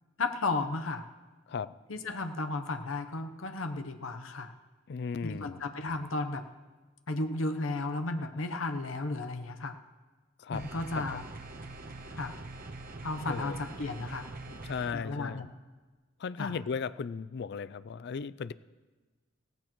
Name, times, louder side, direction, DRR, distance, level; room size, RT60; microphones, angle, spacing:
voice 1, 0.2-1.1 1.9-4.5 5.2-6.5 7.1-9.8 10.5-11.2 12.2-12.4 13.0-14.3 14.9-15.5 16.4-16.5, left 2 dB, 85° left, 7 dB, 0.9 m, -34 dB
voice 2, 4.9-5.6 10.4-10.6 10.9-11.3 13.2-13.6 14.5-15.5 16.2-18.5, left 5 dB, 55° left, 16 dB, 0.4 m, -36 dB
sound 1, 10.5-14.9, right 2 dB, 45° right, 1.0 m, -44 dB
17.5 x 15.0 x 3.1 m, 1.3 s
head